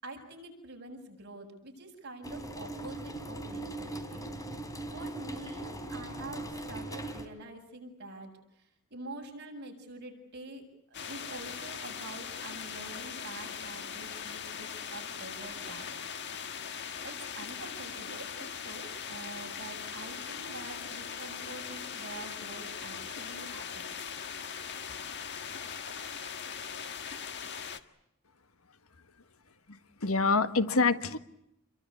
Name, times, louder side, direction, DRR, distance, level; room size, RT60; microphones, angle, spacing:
voice 1, 0.0-4.5 4.9-15.9 17.0-23.9, right 2 dB, 50° right, 2 dB, 7.7 m, -46 dB
sound 1, 2.2-7.2, right 1 dB, 15° left, 3.8 m, -40 dB
sound 2, 10.9-27.8, left 7 dB, 55° left, 1.7 m, -40 dB
voice 2, 29.7-31.2, left 4 dB, 75° left, 10 dB, 1.6 m, -26 dB
28.5 x 23.5 x 8.5 m, 0.80 s
head